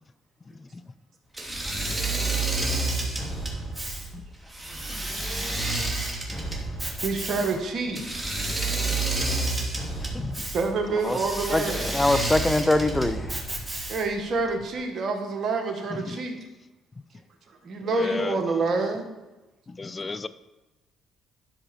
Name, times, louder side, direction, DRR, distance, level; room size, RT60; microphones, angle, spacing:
Engine / Mechanisms, 1.3-14.2, right 2 dB, 15° right, 2.6 m, -30 dB
voice 1, 7.0-8.0 10.5-11.9 13.9-16.4 17.6-19.0, right 3 dB, 55° right, 4 dB, 1.6 m, -27 dB
voice 2, 10.0-10.5 13.7-13.8 15.9-16.2 17.9-18.4 19.7-20.3, left 3 dB, 30° left, 14 dB, 0.5 m, -35 dB
voice 3, 11.5-13.4, left 2 dB, 15° left, 10 dB, 0.8 m, -23 dB
12.0 x 5.0 x 4.5 m, 1.1 s
supercardioid pair, 60°, 0 cm